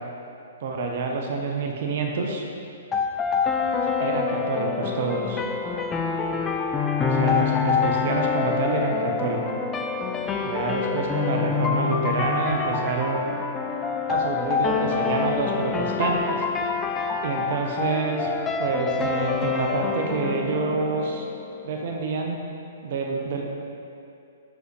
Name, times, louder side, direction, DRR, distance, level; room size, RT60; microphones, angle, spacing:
voice 1, 0.6-2.5 4.0-5.4 7.0-9.4 10.4-13.4 14.1-16.4 17.2-18.3 18.6-21.3 21.6-22.4 22.8-23.4, right 3 dB, 55° right, 1 dB, 0.7 m, -27 dB
sound 1, 2.9-21.9, left 5 dB, 15° left, 0.3 m, -26 dB
6.4 x 4.8 x 3.2 m, 2.6 s
figure-of-eight pair, 120°, 0 cm